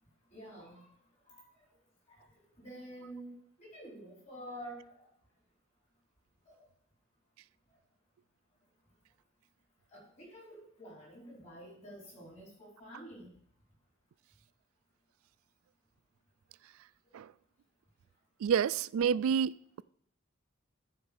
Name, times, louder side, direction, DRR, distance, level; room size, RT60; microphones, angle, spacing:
voice 1, 0.3-0.8 1.3-1.5 2.1-2.3 2.6-5.1 6.4-6.5 9.9-13.3, right 1 dB, 35° left, 4.7 m, -49 dB
voice 2, 18.4-19.8, right 7 dB, 90° right, 0.3 m, -29 dB
14.5 x 4.9 x 5.5 m
head